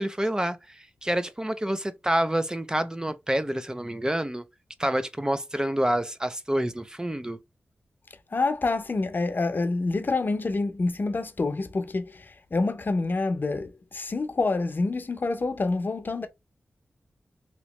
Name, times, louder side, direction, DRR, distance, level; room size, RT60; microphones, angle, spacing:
voice 1, 0.0-4.4 4.8-7.4, right 1 dB, 15° right, 0.5 m, -28 dB
voice 2, 8.3-16.3, left 3 dB, 50° left, 0.7 m, -27 dB
3.0 x 3.0 x 2.9 m
cardioid pair, 55°, 4 cm